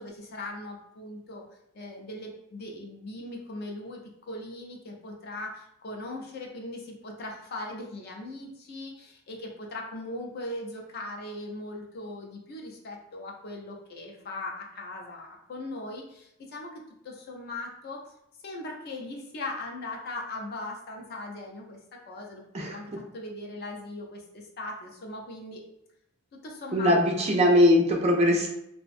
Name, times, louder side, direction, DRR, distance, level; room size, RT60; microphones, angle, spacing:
voice 1, 0.0-1.5 1.7-16.7 17.0-18.0 18.4-25.6 26.3-27.2, left 2 dB, 45° left, 0 dB, 0.4 m, -39 dB
voice 2, 26.7-28.5, left 1 dB, 30° right, 1 dB, 0.3 m, -21 dB
2.4 x 2.1 x 2.5 m, 0.78 s
head